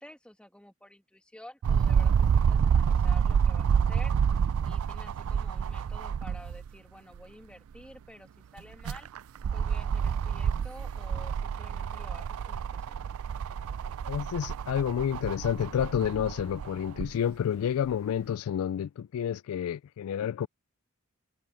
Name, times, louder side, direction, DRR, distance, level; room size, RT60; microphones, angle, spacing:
voice 1, 0.0-4.1 4.6-9.1 9.5-13.1, left 1 dB, 5° left, 1.7 m, -51 dB
sound 1, 1.6-6.7 7.1-7.2 8.6-17.1 17.9-18.0, right 7 dB, 70° right, 0.3 m, -28 dB
voice 2, 14.1-20.5, left 9 dB, 70° left, 0.3 m, -29 dB
head